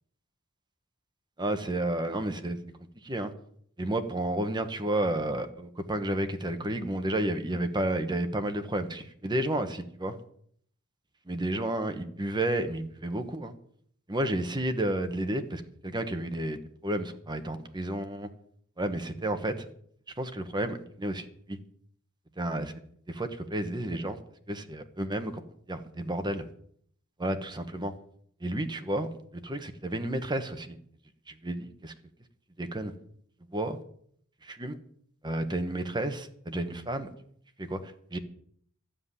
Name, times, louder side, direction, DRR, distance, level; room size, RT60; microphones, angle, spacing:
voice 1, 1.4-2.6 3.0-3.3 3.8-10.2 11.3-13.5 14.1-18.3 18.8-19.7 20.2-21.6 22.4-22.7 23.1-24.2 24.5-26.4 27.2-27.9 28.4-29.1 29.3-30.8 31.3-31.9 32.6-32.9 33.5-33.8 34.4-34.8 35.2-37.1 37.6-38.2, right 1 dB, 20° right, 7 dB, 1.3 m, -31 dB
13.0 x 7.4 x 9.8 m, 0.63 s
head